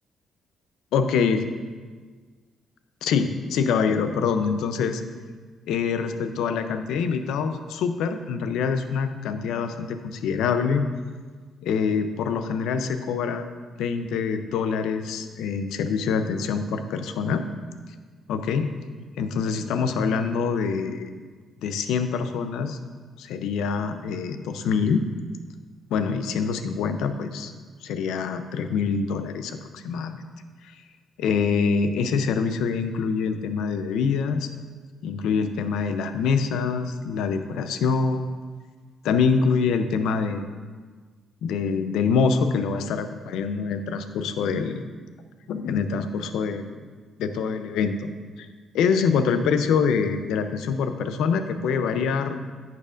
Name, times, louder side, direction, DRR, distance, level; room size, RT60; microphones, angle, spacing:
voice 1, 0.9-1.4 3.0-5.0 5.7-10.9 11.6-13.5 13.8-17.4 18.3-18.7 19.2-21.1 21.6-22.8 23.2-25.0 25.9-27.5 27.8-30.2 31.2-34.5 35.0-38.3 39.0-40.5 41.4-44.8 45.5-46.8 47.2-48.1 48.4-48.5 48.7-52.4, left 5 dB, 85° left, 9 dB, 0.5 m, -25 dB
10.0 x 6.6 x 2.5 m, 1.5 s
cardioid pair, 90°, 0 cm